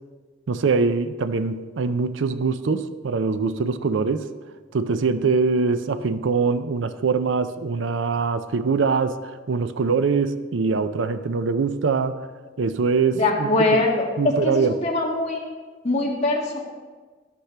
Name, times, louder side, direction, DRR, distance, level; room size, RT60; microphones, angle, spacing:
voice 1, 0.5-4.3 4.7-12.3 12.6-13.8 14.2-14.8, right 4 dB, 75° right, 12 dB, 0.5 m, -23 dB
voice 2, 13.1-14.0 14.4-15.4 15.8-16.6, left 2 dB, 35° left, -2 dB, 2.0 m, -22 dB
12.0 x 11.5 x 3.3 m, 1.4 s
head